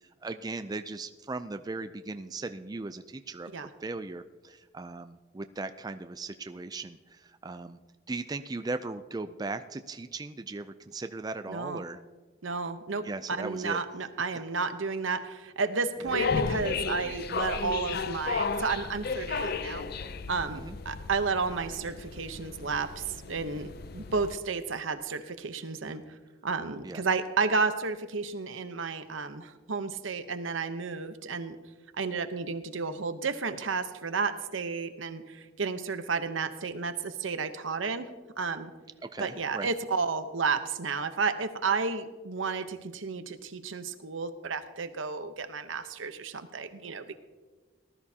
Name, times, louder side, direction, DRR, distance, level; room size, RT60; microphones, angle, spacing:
voice 1, 0.2-3.5 3.8-7.8 8.1-12.0 13.0-13.8 16.0-16.2 20.5-20.8 26.8-27.0 39.1-39.7, right 3 dB, 20° right, 10 dB, 0.4 m, -38 dB
voice 2, 11.5-11.8 12.4-19.8 20.3-26.0 26.4-31.6 32.0-38.1 38.4-38.7 39.2-47.2, right 4 dB, 85° right, 10 dB, 0.9 m, -32 dB
sound 1, 16.1-24.4, left 4 dB, 50° left, 0.5 m, -34 dB
18.5 x 13.0 x 2.8 m, 1.3 s
head